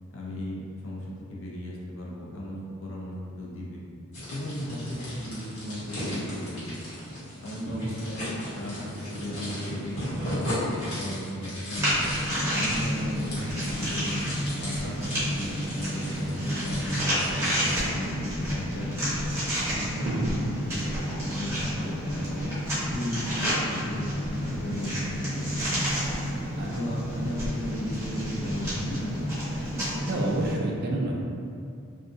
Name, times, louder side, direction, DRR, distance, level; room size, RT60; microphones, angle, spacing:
voice 1, 0.1-1.0 1.3-3.8 4.3-7.0 7.4-8.2 8.6-12.0 12.4-14.2 14.6-19.2 19.7-22.5 22.9-25.5 25.9-26.3 26.7-29.2, left 1 dB, 60° left, -4 dB, 0.5 m, -36 dB
sound 1, 4.1-17.8, equal, 90° left, 1.1 m, -36 dB
sound 2, 11.7-30.5, equal, 10° right, 0.7 m, -30 dB
voice 2, 30.1-31.1, right 1 dB, 45° right, -1 dB, 0.3 m, -29 dB
2.6 x 2.4 x 2.5 m, 2.4 s
head